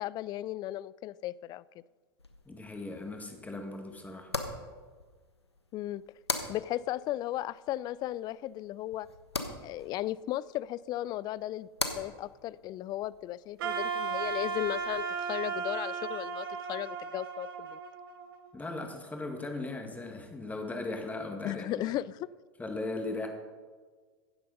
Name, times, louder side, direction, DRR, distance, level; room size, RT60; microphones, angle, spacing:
voice 1, 0.0-1.6 5.7-6.0 6.5-9.1 9.6-11.7 11.9-17.8 21.4-22.2, left 14 dB, 30° left, 20 dB, 0.3 m, -35 dB
sound 1, 2.2-15.0, left 3 dB, 85° left, 1.3 m, -42 dB
voice 2, 2.5-4.3 18.5-21.9 22.6-23.3, left 2 dB, 10° left, 4 dB, 2.0 m, -38 dB
Wind instrument woodwind instrument, 13.6-18.6, right 6 dB, 60° right, 1.2 m, -35 dB
16.0 x 7.6 x 5.5 m, 1.5 s
figure-of-eight pair, 85°, 13 cm